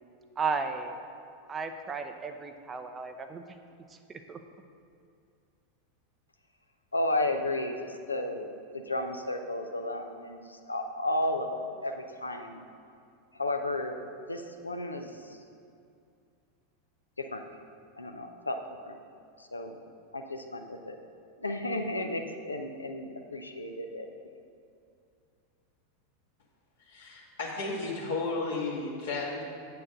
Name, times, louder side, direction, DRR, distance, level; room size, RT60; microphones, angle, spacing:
voice 1, 0.4-1.0 1.5-3.4 4.3-4.4, right 5 dB, 25° right, 6 dB, 0.6 m, -34 dB
voice 2, 6.9-12.6 13.3-15.4 17.2-17.4 18.0-18.6 18.9-19.0 19.4-19.8 20.1-21.0 21.4-24.1, left 1 dB, 85° left, 5 dB, 0.7 m, -33 dB
voice 3, 26.9-29.4, left 3 dB, 70° left, -5 dB, 1.6 m, -33 dB
8.5 x 4.7 x 6.4 m, 2.4 s
figure-of-eight pair, 85°, 0 cm